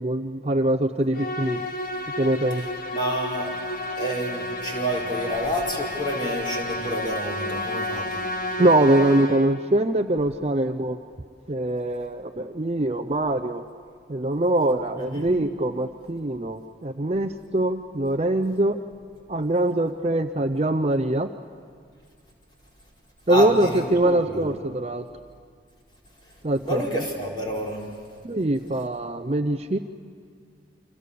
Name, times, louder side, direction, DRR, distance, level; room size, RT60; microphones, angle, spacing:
voice 1, 0.0-1.6 2.2-2.6 8.6-11.0 11.5-13.6 14.1-18.8 19.3-21.3 23.3-25.0 26.4-26.8 28.2-29.8, right 1 dB, 35° right, 8 dB, 0.6 m, -23 dB
Musical instrument, 1.1-9.7, left 1 dB, 50° left, 1.8 m, -31 dB
voice 2, 2.5-3.5 4.0-8.2 15.0-15.3 23.3-24.5 26.6-27.8 28.7-28.8, equal, 25° left, -2 dB, 4.7 m, -29 dB
29.0 x 26.5 x 6.9 m, 2.2 s
head